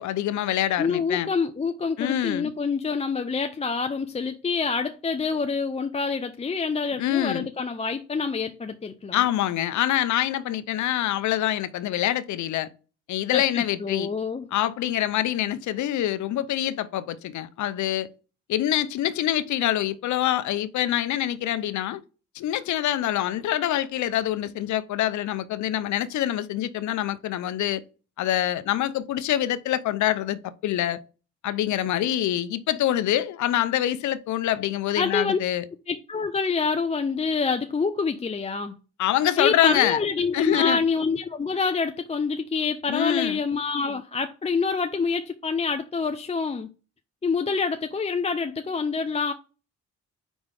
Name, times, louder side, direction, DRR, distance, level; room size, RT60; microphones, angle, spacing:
voice 1, 0.0-1.3 2.0-2.5 7.0-7.5 9.1-12.7 13.1-14.1 14.5-18.1 18.5-22.0 22.3-27.8 28.2-31.0 31.4-35.6 39.0-40.0 40.3-40.8 42.9-43.4, left 12 dB, 70° left, 0.7 m, -25 dB
voice 2, 0.8-9.2 13.3-14.5 35.0-35.4 35.9-38.8 39.4-46.7 47.2-49.3, left 5 dB, 20° left, 0.5 m, -27 dB
5.0 x 3.9 x 4.8 m
cardioid pair, 90°, 30 cm